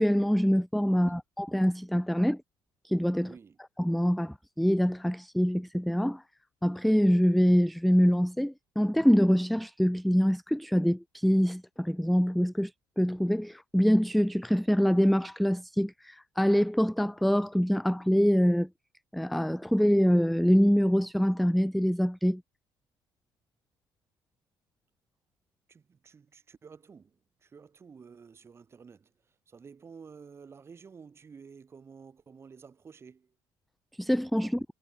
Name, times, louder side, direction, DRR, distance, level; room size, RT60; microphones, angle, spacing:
voice 1, 0.0-2.4 2.8-3.3 3.8-6.2 6.6-12.7 13.0-18.7 19.1-22.4 34.0-34.6, equal, ahead, 0.4 m, -25 dB
voice 2, 3.2-3.6 25.7-29.1 29.5-33.3 34.4-34.6, right 6 dB, 25° right, 3.8 m, -51 dB
cardioid pair, 135°, 9 cm